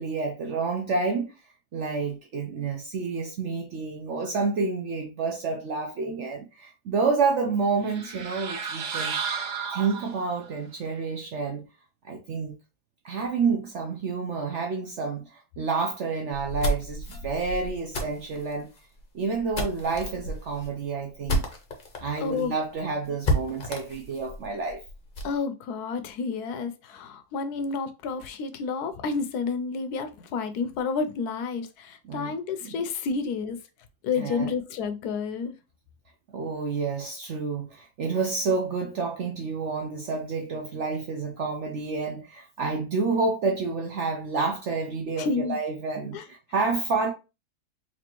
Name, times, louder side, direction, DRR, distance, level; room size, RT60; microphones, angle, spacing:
voice 1, 0.0-1.3 1.7-9.2 9.7-11.7 12.0-12.6 13.0-18.7 19.1-21.5 22.0-24.8 32.0-32.3 32.6-32.8 34.2-34.5 36.3-47.1, right 4 dB, 65° right, 0.7 m, -29 dB
sound 1, 7.8-10.5, right 6 dB, 85° right, 1.4 m, -33 dB
sound 2, 16.3-22.0 22.4-22.5 22.7-22.8 23.2-25.4, equal, 45° left, 0.7 m, -31 dB
voice 2, 22.2-22.5 25.2-33.6 34.0-35.5 45.2-45.6 46.1-46.2, left 5 dB, 75° left, 1.1 m, -30 dB
4.2 x 2.8 x 3.0 m
omnidirectional pair, 1.7 m